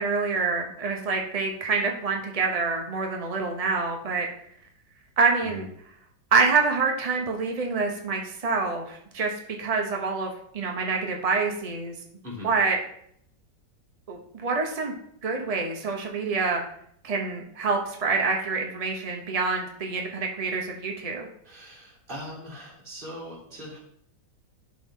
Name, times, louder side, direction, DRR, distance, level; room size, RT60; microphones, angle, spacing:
voice 1, 0.0-4.3 5.2-5.7 6.3-9.3 9.6-12.0 12.4-12.8 14.1-14.9 15.2-16.6 17.0-21.3, right 4 dB, 60° right, 1 dB, 0.3 m, -26 dB
voice 2, 21.4-23.8, left 1 dB, 25° right, -4 dB, 2.3 m, -40 dB
11.0 x 3.8 x 3.6 m, 0.68 s
omnidirectional pair, 2.0 m